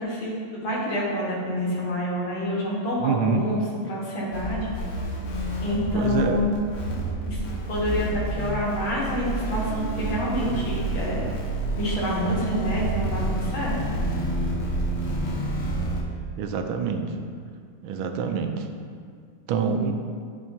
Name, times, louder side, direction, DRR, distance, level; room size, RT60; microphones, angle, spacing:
voice 1, 0.0-4.7 5.6-6.5 6.9-7.4 7.7-11.2 11.8-13.8 19.6-19.8, equal, 75° left, -5 dB, 2.2 m, -27 dB
voice 2, 3.0-3.4 5.9-6.4 16.4-17.1 17.8-18.7 19.5-19.9, right 6 dB, 85° right, 5 dB, 1.4 m, -26 dB
sound 1, 4.3-16.0, right 1 dB, 45° left, 0.9 m, -29 dB
11.0 x 4.7 x 2.7 m, 2.2 s
omnidirectional pair, 2.2 m